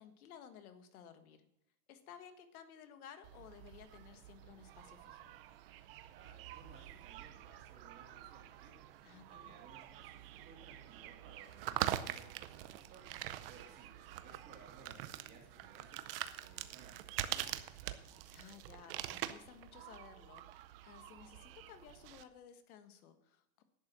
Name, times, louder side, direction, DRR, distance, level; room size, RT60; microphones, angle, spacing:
voice 1, 0.0-1.5 1.9-5.3 9.0-9.6 18.3-23.6, left 8 dB, 85° left, 8 dB, 1.6 m, -56 dB
sound 1, 3.2-22.2, right 13 dB, 45° right, 0.6 m, -45 dB
voice 2, 6.1-18.0, right 4 dB, 25° right, 0 dB, 2.4 m, -60 dB
11.0 x 8.1 x 6.0 m, 0.82 s
supercardioid pair, 180°, 42 cm